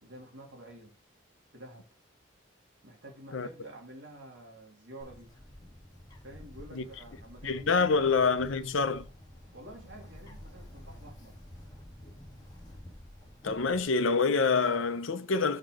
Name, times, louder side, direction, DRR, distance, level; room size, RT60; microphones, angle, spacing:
voice 1, 0.0-1.0 1.5-1.9 2.8-5.3 6.2-8.0 9.5-11.4, right 1 dB, 65° right, 2.8 m, -49 dB
Bird, 5.0-13.8, left 1 dB, 20° left, 2.3 m, -50 dB
voice 2, 7.4-9.1 13.4-15.6, left 4 dB, 80° left, 0.7 m, -26 dB
6.5 x 6.0 x 4.8 m
head